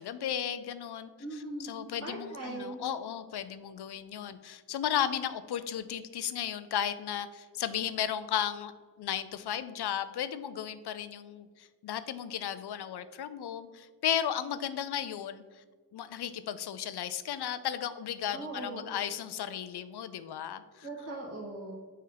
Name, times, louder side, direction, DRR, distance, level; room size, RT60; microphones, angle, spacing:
voice 1, 0.0-8.7 9.0-15.4 15.9-20.9, left 9 dB, 75° left, 13 dB, 0.5 m, -35 dB
voice 2, 1.2-1.7 2.0-2.8 18.3-18.9 20.8-21.7, right 2 dB, 40° right, -6 dB, 1.8 m, -40 dB
6.2 x 4.4 x 3.9 m, 1.5 s
wide cardioid pair, 75°, 40 cm